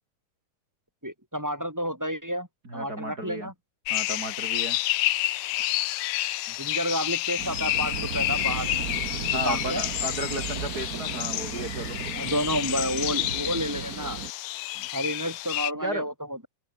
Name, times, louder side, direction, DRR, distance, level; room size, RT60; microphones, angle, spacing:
voice 1, 1.0-3.5 6.6-8.9 9.3-9.8 12.1-14.2 14.9-16.5, equal, 5° right, 4.2 m, -30 dB
voice 2, 2.6-3.5 3.9-4.8 9.3-12.0 14.7-14.9 15.8-16.1, right 1 dB, 25° right, 7.5 m, -34 dB
sound 1, 3.9-15.7, left 17 dB, 80° left, 1.6 m, -29 dB
sound 2, 7.4-14.3, right 7 dB, 70° right, 0.8 m, -36 dB
open air
omnidirectional pair, 3.8 m